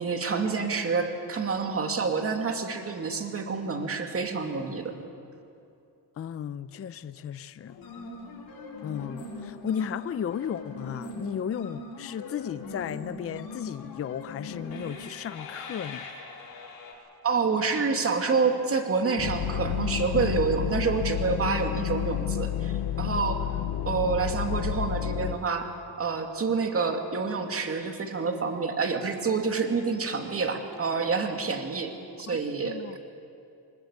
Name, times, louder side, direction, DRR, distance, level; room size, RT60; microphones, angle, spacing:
voice 1, 0.0-4.9 17.2-23.5 23.8-25.7 26.0-31.9 32.2-33.0, right 4 dB, 35° right, 5 dB, 2.5 m, -28 dB
voice 2, 6.2-7.8 8.8-16.1 32.3-33.0, left 8 dB, 35° left, 14 dB, 0.6 m, -34 dB
sound 1, 7.7-16.9, left 3 dB, 60° left, 5.8 m, -41 dB
sound 2, 19.2-25.4, left 11 dB, 85° left, 1.1 m, -30 dB
24.0 x 20.5 x 8.4 m, 2.6 s
cardioid pair, 105°, 40 cm